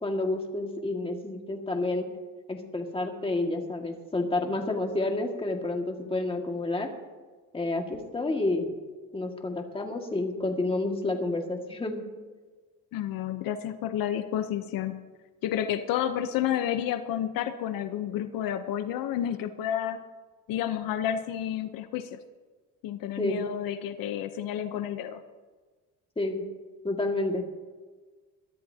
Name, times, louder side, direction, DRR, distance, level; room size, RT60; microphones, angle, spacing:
voice 1, 0.0-2.1 2.5-6.9 7.5-8.7 9.1-12.0 23.2-23.4 26.2-26.4 26.8-27.4, left 2 dB, 15° left, 2 dB, 2.0 m, -29 dB
voice 2, 12.9-15.0 15.4-20.1 20.5-22.2 22.8-25.2, left 10 dB, 85° left, 9 dB, 0.9 m, -30 dB
22.5 x 13.5 x 2.8 m, 1.4 s
cardioid pair, 125°, 33 cm